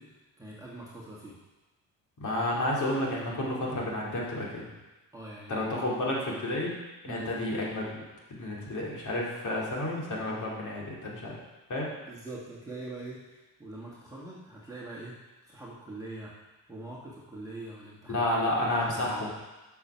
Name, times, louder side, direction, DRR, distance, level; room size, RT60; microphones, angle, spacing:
voice 1, 0.0-1.4 5.1-5.6 7.0-7.3 12.0-16.3 16.7-18.3 18.6-19.3, right 2 dB, 10° right, -6 dB, 1.6 m, -43 dB
voice 2, 2.2-4.7 5.5-6.8 7.0-8.0 8.3-11.4 11.7-11.9 18.1-19.3, left 1 dB, 50° left, -4 dB, 2.7 m, -31 dB
6.8 x 5.9 x 5.6 m, 1.1 s
cardioid pair, 85°, 38 cm